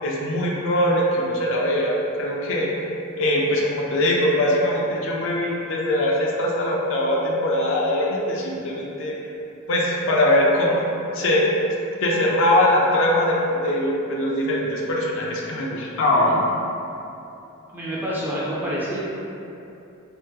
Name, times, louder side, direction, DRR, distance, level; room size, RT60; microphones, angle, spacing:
voice 1, 0.0-2.9 3.2-9.1 9.7-10.8 11.1-11.5 12.0-16.4, left 1 dB, 60° left, -3 dB, 0.4 m, -21 dB
voice 2, 17.7-19.0, equal, 10° right, -8 dB, 0.5 m, -27 dB
3.5 x 2.1 x 2.7 m, 2.8 s
head